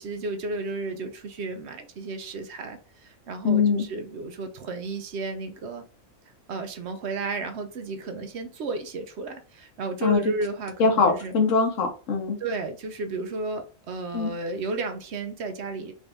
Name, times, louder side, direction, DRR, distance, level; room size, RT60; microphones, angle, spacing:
voice 1, 0.0-5.8 6.5-11.3 12.4-15.9, right 3 dB, 65° right, 6 dB, 0.9 m, -33 dB
voice 2, 3.4-3.9 10.0-10.3 10.8-12.4 14.1-14.3, left 4 dB, 80° left, 3 dB, 1.3 m, -22 dB
3.9 x 2.6 x 3.4 m, 0.36 s
omnidirectional pair, 1.3 m